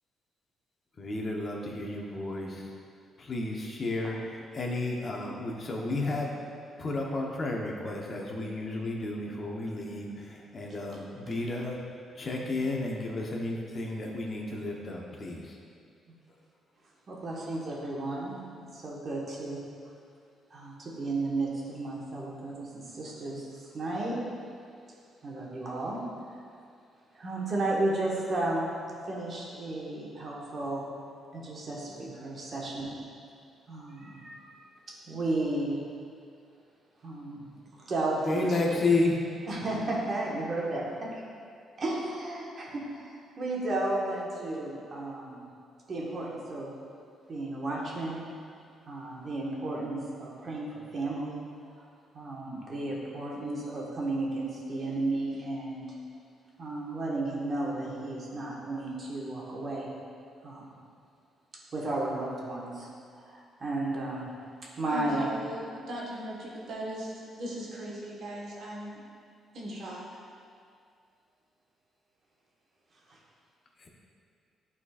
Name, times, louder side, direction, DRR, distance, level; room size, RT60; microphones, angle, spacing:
voice 1, 1.0-2.7 3.2-6.3 6.8-11.8 12.1-15.6 38.3-39.2 73.8-73.9, left 2 dB, 40° left, -1 dB, 0.9 m, -32 dB
voice 2, 17.1-19.6 20.5-24.2 25.2-26.0 27.1-30.9 31.3-32.9 33.7-34.6 35.1-35.8 37.0-38.4 39.5-40.9 41.8-45.4 45.9-46.7 47.3-48.2 48.9-50.7 50.9-51.4 52.1-55.8 56.6-59.9 60.4-60.7 61.7-62.9 63.1-64.3 64.8-65.3 73.1-73.2, right 2 dB, 45° right, -4 dB, 1.5 m, -33 dB
voice 3, 64.9-69.0 69.5-70.1, right 1 dB, 70° right, -5 dB, 1.4 m, -38 dB
10.5 x 4.2 x 2.4 m, 2.3 s
cardioid pair, 90°, 0 cm